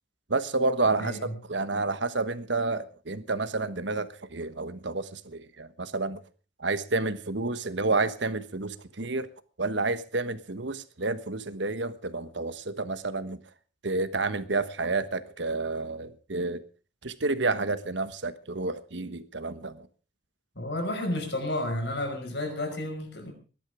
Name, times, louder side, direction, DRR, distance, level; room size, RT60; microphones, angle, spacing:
voice 1, 0.3-6.2 6.6-9.3 9.6-13.4 13.8-16.6 17.0-19.9, right 3 dB, 65° right, 12 dB, 1.3 m, -30 dB
voice 2, 1.0-1.3 20.6-23.3, left 1 dB, 60° left, 4 dB, 5.6 m, -31 dB
18.5 x 12.0 x 5.0 m, 0.37 s
head